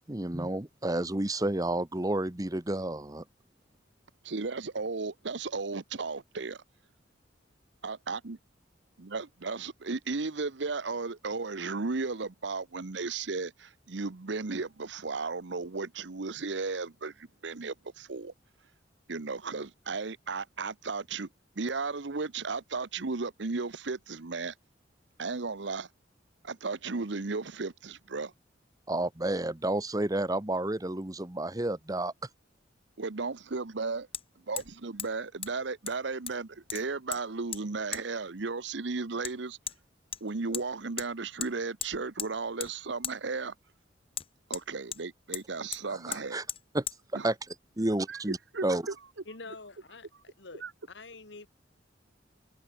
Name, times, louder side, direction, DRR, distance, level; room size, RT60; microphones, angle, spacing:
voice 1, 0.1-3.2 28.9-32.1 45.9-46.4 46.7-46.8 47.2-47.3 47.8-48.4 48.6-48.8, right 1 dB, 20° right, 1.1 m, -30 dB
voice 2, 4.2-6.6 7.8-8.4 9.0-18.3 19.1-21.3 21.6-24.5 25.2-25.9 26.4-28.3 33.0-34.1 34.5-39.6 40.2-43.5 44.5-46.4 47.1-47.3 48.1-48.2 48.5-48.9 50.6-50.7, right 4 dB, 70° right, 0.9 m, -35 dB
Hammer, 32.2-32.3 34.1-34.2 34.6-34.7 35.0-35.1 35.4-35.5 35.9-36.4 36.7-37.2 37.5-37.6 37.9-38.0 39.2-39.3 39.7-39.8 40.1-40.7 41.0-41.1 41.4-41.5 41.8-42.3 42.6-42.7 43.0-43.2 44.1-45.0 45.3-45.5 45.7-45.8 46.1-46.2 46.5-46.6 46.9-47.0, left 9 dB, 30° left, 2.3 m, -37 dB
voice 3, 49.3-51.5, left 3 dB, 65° left, 1.9 m, -47 dB
head